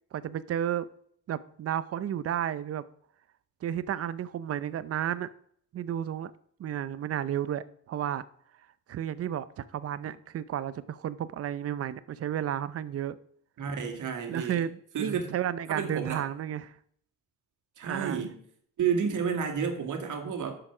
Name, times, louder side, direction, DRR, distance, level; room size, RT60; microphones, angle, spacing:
voice 1, 0.1-0.9 1.3-2.8 3.6-5.3 5.7-6.3 6.6-8.2 8.9-13.2 14.3-16.7 17.8-18.2, right 10 dB, 45° right, 16 dB, 0.6 m, -32 dB
voice 2, 13.6-14.6 14.9-15.2 15.7-16.2 17.8-18.3 18.8-20.6, right 6 dB, 60° right, 4 dB, 2.2 m, -30 dB
11.5 x 6.8 x 6.1 m, 0.65 s
cardioid pair, 150°, 35 cm